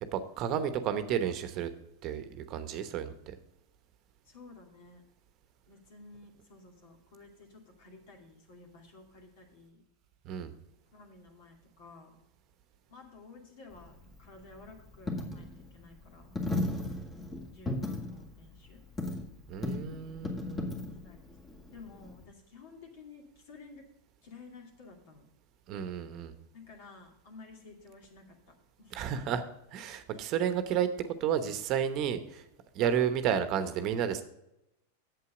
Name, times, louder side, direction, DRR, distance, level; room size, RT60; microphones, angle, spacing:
voice 1, 0.1-1.7 2.0-3.3 10.2-10.5 19.5-20.7 25.7-26.3 28.9-29.4 29.7-32.4 32.7-34.2, right 8 dB, 45° right, 10 dB, 1.0 m, -31 dB
voice 2, 4.2-5.0 5.7-9.8 10.9-12.2 12.9-16.4 17.5-18.8 21.0-21.3 21.6-23.9 24.2-25.2 26.5-29.2 30.2-30.3, left 4 dB, 60° left, 2 dB, 2.5 m, -53 dB
Coin (dropping), 13.7-22.3, left 2 dB, 20° left, 1.9 m, -37 dB
8.4 x 7.7 x 5.1 m, 0.84 s
hypercardioid pair, 100°, 0 cm